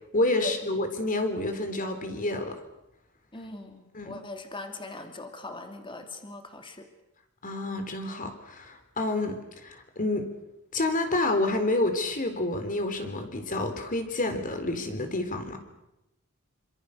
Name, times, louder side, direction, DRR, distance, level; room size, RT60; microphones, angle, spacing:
voice 1, 0.1-2.5 3.9-4.1 7.4-10.3 10.7-15.6, left 2 dB, 40° left, 7 dB, 3.8 m, -29 dB
voice 2, 3.3-6.9, left 2 dB, 25° left, 5 dB, 2.7 m, -40 dB
28.0 x 26.0 x 6.7 m, 0.89 s
head